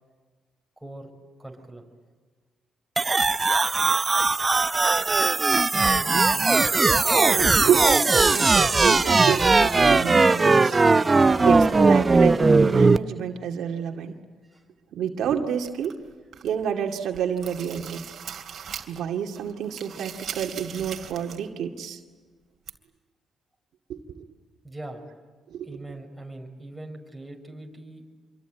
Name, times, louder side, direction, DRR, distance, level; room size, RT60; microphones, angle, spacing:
voice 1, 0.8-1.1 1.4-1.9 5.6-7.1 14.4-14.6 24.6-25.1 25.6-28.1, right 1 dB, 5° right, 1 dB, 5.8 m, -42 dB
sound 1, 3.0-13.0, right 3 dB, 25° right, 0.7 m, -19 dB
voice 2, 7.1-10.8 11.4-14.1 14.9-15.9 16.4-18.0 18.9-22.0 23.9-24.3 25.5-25.7, right 8 dB, 75° right, 3 dB, 2.2 m, -28 dB
sound 2, 15.6-16.6 17.0-19.1 19.4-21.5 21.8-21.9 22.7-22.8, right 8 dB, 55° right, 2.7 m, -39 dB
26.5 x 23.5 x 9.2 m, 1.5 s
cardioid pair, 90°, 0 cm